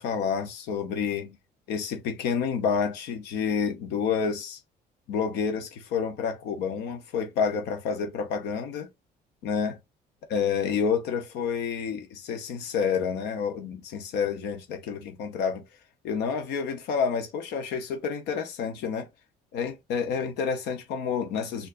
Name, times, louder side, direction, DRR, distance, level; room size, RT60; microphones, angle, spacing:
voice 1, 0.0-1.4 1.7-4.6 5.1-8.9 9.4-9.8 10.3-15.6 16.0-19.1 19.5-21.7, left 6 dB, 85° left, 0.9 m, -29 dB
4.5 x 2.6 x 2.5 m
cardioid pair, 110°, 17 cm